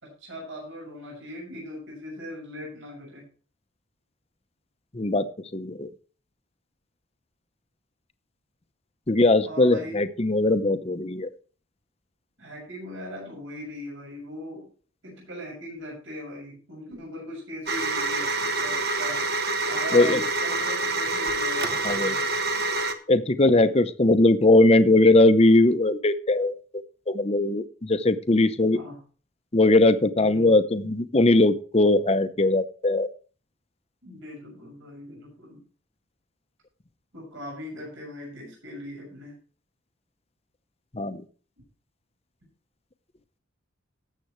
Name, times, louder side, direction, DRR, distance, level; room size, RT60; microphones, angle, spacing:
voice 1, 0.0-3.3 9.5-9.9 12.4-14.7 15.0-19.2 19.7-22.2 28.7-29.0 30.1-30.6 34.0-35.6 37.1-39.4, left 1 dB, 75° right, -2 dB, 6.7 m, -39 dB
voice 2, 4.9-5.3 5.5-5.9 9.1-11.3 19.9-20.2 21.8-22.2 23.1-26.5 27.1-28.8 29.5-33.1 40.9-41.2, left 2 dB, 30° left, 11 dB, 0.8 m, -20 dB
sound 1, 17.7-22.9, right 2 dB, 50° right, 1.2 m, -26 dB
18.5 x 7.7 x 3.2 m, 0.40 s
head